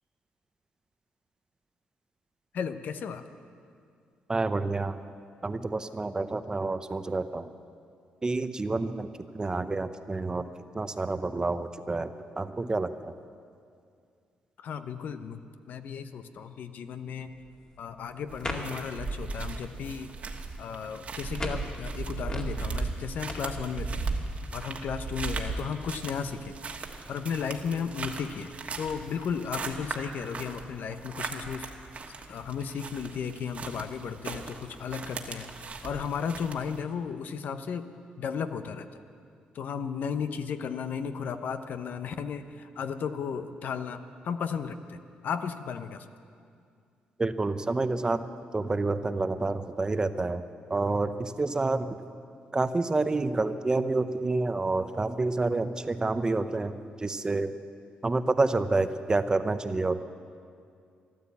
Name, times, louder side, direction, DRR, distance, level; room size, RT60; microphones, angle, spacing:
voice 1, 2.5-3.2 14.6-15.4 15.7-17.3 17.8-20.1 20.6-24.0 24.5-26.5 27.1-31.7 32.3-35.5 35.8-37.8 38.2-39.0 39.5-46.1, left 6 dB, 65° left, 9 dB, 0.8 m, -34 dB
voice 2, 4.3-5.0 5.4-7.5 8.2-13.1 47.2-48.3 48.5-50.4 50.7-52.0 52.5-57.6 58.0-60.0, right 3 dB, 25° right, 11 dB, 0.7 m, -28 dB
sound 1, 17.2-23.3, left 1 dB, 30° left, 2.1 m, -42 dB
sound 2, 18.3-36.8, right 4 dB, 45° right, 1.5 m, -37 dB
14.0 x 12.0 x 8.4 m, 2.3 s
cardioid pair, 85°, 3 cm